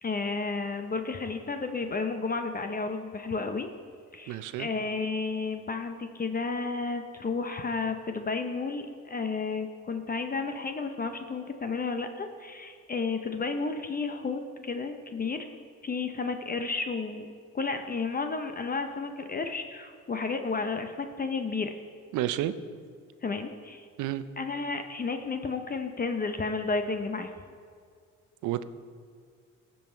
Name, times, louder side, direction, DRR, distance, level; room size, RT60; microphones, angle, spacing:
voice 1, 0.0-3.7 4.1-15.5 15.8-21.7 23.2-23.9 24.4-27.3, left 4 dB, 30° left, 6 dB, 0.6 m, -32 dB
voice 2, 4.3-4.7 22.1-22.5 24.0-24.2 28.4-28.6, right 13 dB, 85° right, 13 dB, 0.5 m, -30 dB
15.5 x 5.5 x 4.4 m, 2.1 s
cardioid pair, 90°, 30 cm